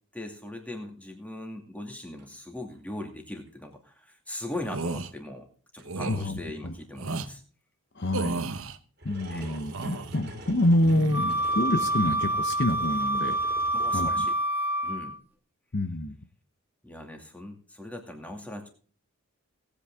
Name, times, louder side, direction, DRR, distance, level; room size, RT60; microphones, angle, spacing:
voice 1, 0.1-5.5 5.7-7.4 9.3-9.5 13.7-14.3 14.8-15.2 16.8-18.7, left 1 dB, 5° left, 3 dB, 2.3 m, -39 dB
sound 1, 2.2-2.3 2.7-3.0 3.5-3.6 4.6-4.7 5.8-5.9 6.8-6.9 9.0-14.4, right 1 dB, 45° right, 2.4 m, -46 dB
sound 2, 4.6-5.1 5.9-6.2 7.0-7.3 8.1-8.8 9.5-10.2 10.8-11.5 11.8-12.2, right 3 dB, 65° right, 1.0 m, -34 dB
voice 2, 8.0-8.5 9.0-13.3 13.9-14.2 15.7-16.2, left 1 dB, 50° left, 8 dB, 0.9 m, -27 dB
Wind instrument woodwind instrument, 11.1-15.2, right 1 dB, 10° right, 2.0 m, -27 dB
18.5 x 8.5 x 3.7 m, 0.43 s
head